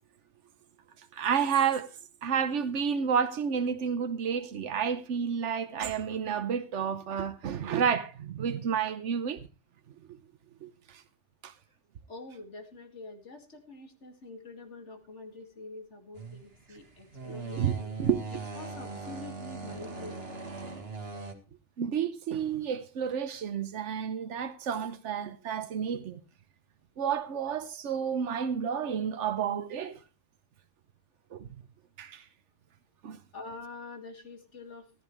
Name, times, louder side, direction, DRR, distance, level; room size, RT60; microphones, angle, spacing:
voice 1, 1.1-1.9 2.2-9.4 10.6-11.0 11.4-11.5 17.6-17.7 18.0-18.2 21.8-26.2 27.0-30.0 31.3-31.5 32.0-32.2 33.0-33.2, right 7 dB, 85° right, 1.2 m, -30 dB
voice 2, 12.1-17.9 18.3-20.4 33.3-34.9, left 3 dB, 80° left, 2.5 m, -46 dB
sound 1, 16.1-21.3, right 4 dB, 60° right, 1.9 m, -40 dB
14.0 x 14.0 x 3.2 m
omnidirectional pair, 1.2 m